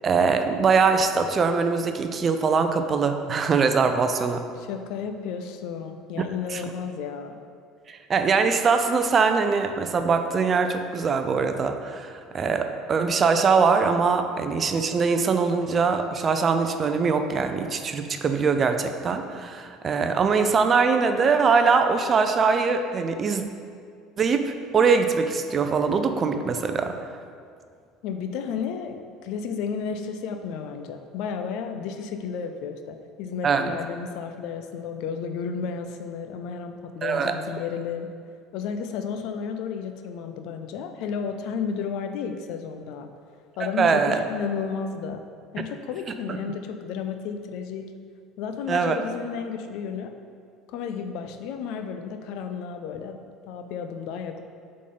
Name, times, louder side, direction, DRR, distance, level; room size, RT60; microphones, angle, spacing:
voice 1, 0.0-4.4 6.5-6.6 7.9-23.4 24.2-27.0 33.4-33.8 37.0-37.4 43.6-44.2 48.7-49.0, right 5 dB, 40° right, 7 dB, 0.5 m, -22 dB
voice 2, 4.6-7.4 28.0-38.1 38.5-43.1 43.6-45.2 45.5-47.9 48.4-50.1 50.7-53.2 53.5-54.4, left 6 dB, 65° left, 7 dB, 0.5 m, -32 dB
7.2 x 3.8 x 3.9 m, 2.2 s
hypercardioid pair, 70°, 0 cm